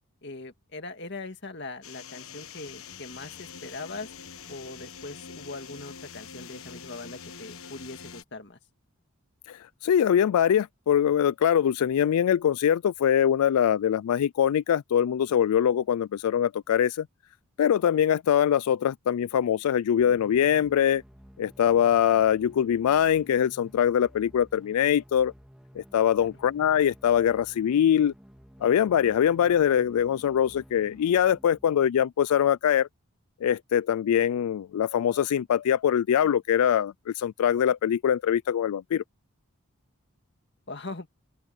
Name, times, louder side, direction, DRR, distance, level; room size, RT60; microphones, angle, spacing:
voice 1, 0.2-4.1 4.5-8.6 26.2-26.3 40.7-41.1, left 3 dB, 50° left, 1.9 m, -41 dB
sound 1, 1.8-8.2, left 6 dB, 70° left, 1.2 m, -44 dB
voice 2, 9.5-17.1 17.6-21.0 21.4-25.3 25.8-28.1 28.6-32.9 33.4-39.0, left 9 dB, 85° left, 0.3 m, -23 dB
sound 2, 20.0-31.9, equal, 5° right, 1.7 m, -53 dB
open air
head